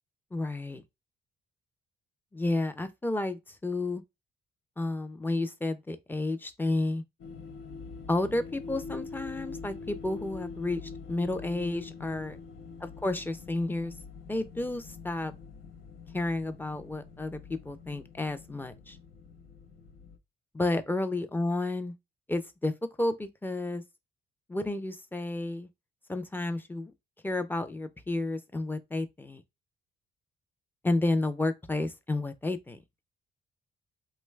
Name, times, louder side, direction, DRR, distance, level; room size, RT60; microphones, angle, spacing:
voice 1, 0.3-0.8 2.3-4.0 4.8-7.0 8.1-10.8 11.1-12.4 12.8-13.9 14.3-15.3 16.1-19.0 20.5-22.0 22.3-22.7 23.0-23.8 24.5-25.7 26.1-26.9 27.2-29.4 30.8-32.8, left 2 dB, 10° left, 0.4 m, -31 dB
sound 1, 7.2-20.2, left 4 dB, 80° left, 0.7 m, -44 dB
3.1 x 2.2 x 3.2 m
cardioid pair, 90°, 20 cm